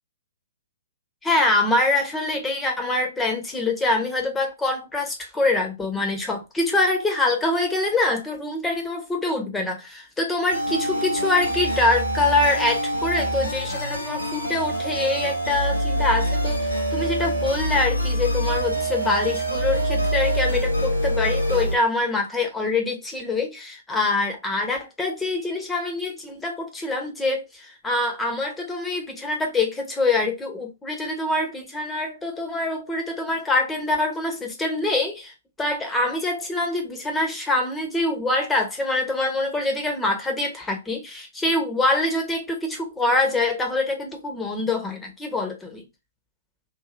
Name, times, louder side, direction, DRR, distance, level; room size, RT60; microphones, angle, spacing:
voice 1, 1.2-45.8, left 2 dB, 10° left, 0.9 m, -25 dB
sound 1, 10.5-21.8, right 1 dB, 85° left, 0.9 m, -25 dB
3.0 x 2.6 x 2.5 m
figure-of-eight pair, 120°, 0 cm